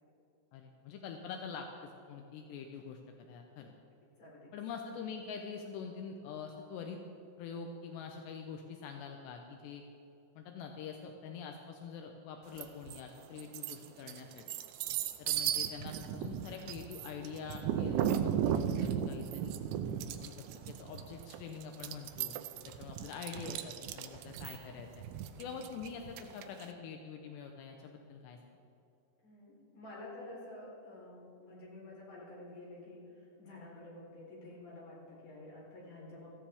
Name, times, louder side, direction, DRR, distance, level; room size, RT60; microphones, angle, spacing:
voice 1, 0.5-3.0 3.3-3.7 4.5-7.0 7.4-9.8 10.4-14.5 15.2-19.6 20.2-22.4 22.7-25.0 25.4-28.4, left 6 dB, 80° left, 4 dB, 2.9 m, -45 dB
voice 2, 4.2-4.5 20.6-20.8 25.3-25.6 29.2-36.3, left 2 dB, 50° left, -5 dB, 5.2 m, -50 dB
sound 1, 12.6-13.0 13.4-26.6, right 9 dB, 85° right, 2.9 m, -36 dB
17.0 x 14.5 x 3.5 m, 2.7 s
omnidirectional pair, 5.0 m